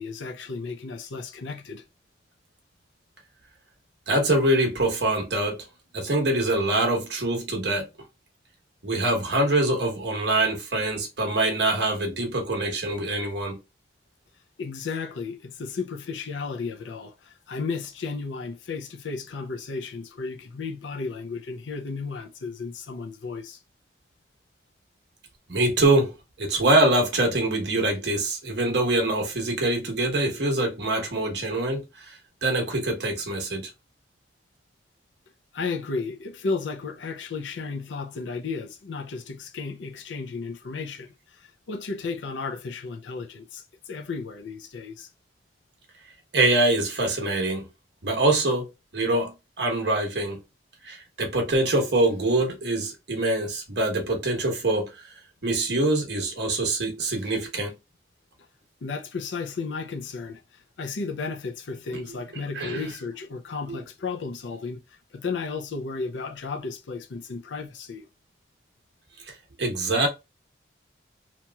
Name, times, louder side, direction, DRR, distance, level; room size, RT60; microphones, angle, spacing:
voice 1, 0.0-1.8 14.6-23.6 35.5-45.1 58.8-68.1, left 4 dB, 90° left, 0.5 m, -34 dB
voice 2, 4.1-5.6 5.9-7.9 8.8-13.6 25.5-32.2 32.4-33.7 46.3-47.7 48.0-48.7 48.9-50.4 50.8-55.0 55.4-57.8 61.9-62.0 62.6-62.8 69.6-70.1, right 2 dB, 70° right, 1.0 m, -24 dB
2.9 x 2.9 x 2.2 m
head